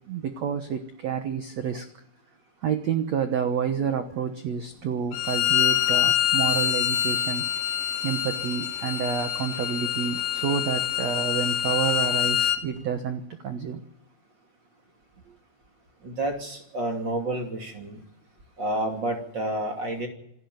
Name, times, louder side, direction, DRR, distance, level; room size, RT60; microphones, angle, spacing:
voice 1, 0.1-1.8 2.6-7.4 8.0-13.8, right 7 dB, 80° right, 8 dB, 1.5 m, -29 dB
Bowed string instrument, 5.1-12.6, left 11 dB, 90° left, 3.4 m, -25 dB
voice 2, 16.0-18.0 18.6-20.1, right 1 dB, 30° right, 3 dB, 2.8 m, -29 dB
26.5 x 12.5 x 9.4 m, 0.77 s
omnidirectional pair, 4.9 m